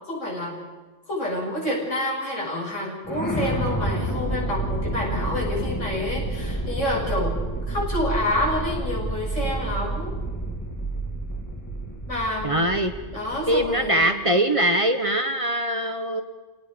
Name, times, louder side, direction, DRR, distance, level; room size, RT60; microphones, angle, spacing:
voice 1, 0.1-0.6 1.1-7.4 7.7-10.1 12.1-12.7 13.1-14.3, left 1 dB, 85° left, -4 dB, 7.6 m, -28 dB
sound 1, 3.0-14.1, right 2 dB, 15° left, 1.9 m, -29 dB
voice 2, 12.4-12.9 13.5-16.2, right 1 dB, 30° right, 6 dB, 1.2 m, -22 dB
28.5 x 18.5 x 5.2 m, 1.2 s
omnidirectional pair, 1.2 m